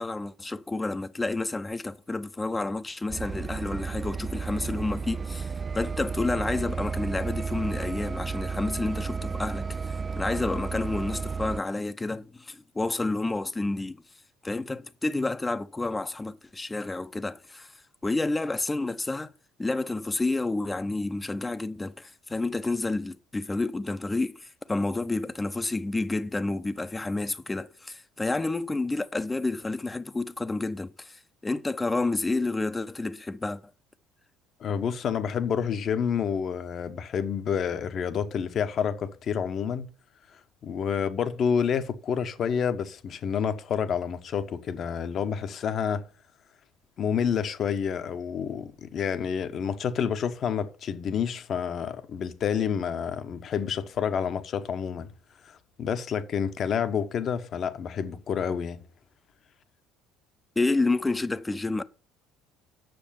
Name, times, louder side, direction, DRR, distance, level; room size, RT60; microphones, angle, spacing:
voice 1, 0.0-9.7 10.2-14.0 14.4-17.7 18.0-19.3 19.6-33.6 60.6-61.8, left 2 dB, 15° left, 0.8 m, -30 dB
sound 1, 3.1-11.6, right 5 dB, 30° right, 0.4 m, -33 dB
voice 2, 34.6-39.9 40.6-46.0 47.0-55.1 55.4-58.8, left 7 dB, 50° left, 1.0 m, -29 dB
7.9 x 6.5 x 7.0 m
hypercardioid pair, 60°, 0 cm